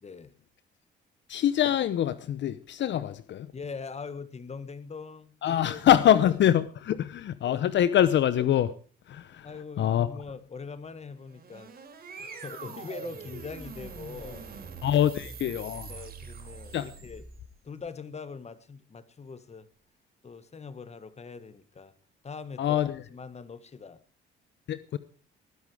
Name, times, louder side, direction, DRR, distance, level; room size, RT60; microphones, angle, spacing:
voice 1, 0.0-0.3 2.9-3.1 3.5-5.9 6.9-7.1 9.4-11.7 12.2-14.4 15.9-17.2 17.6-19.7 20.2-21.9 22.2-24.0, left 5 dB, 35° left, 1.7 m, -42 dB
voice 2, 1.3-3.5 5.4-8.7 9.1-9.5 9.8-10.1 14.8-15.9 16.7-16.9 22.6-23.0 24.7-25.0, left 10 dB, 65° left, 0.8 m, -24 dB
sound 1, 11.1-17.5, right 5 dB, 50° right, 5.0 m, -43 dB
20.0 x 11.0 x 4.9 m
cardioid pair, 90°, 20 cm